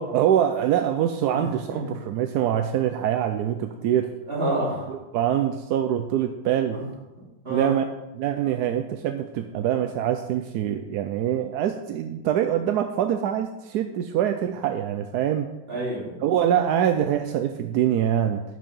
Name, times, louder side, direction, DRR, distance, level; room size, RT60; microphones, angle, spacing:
voice 1, 0.1-4.1 4.9-6.8 7.5-7.8 8.1-15.5 16.2-18.4, right 10 dB, 70° right, 7 dB, 1.0 m, -24 dB
voice 2, 1.3-1.9 4.3-4.9 6.7-6.8 7.4-7.8 15.7-16.2, right 1 dB, 30° right, -7 dB, 3.7 m, -28 dB
10.5 x 6.4 x 5.4 m, 1.0 s
omnidirectional pair, 2.1 m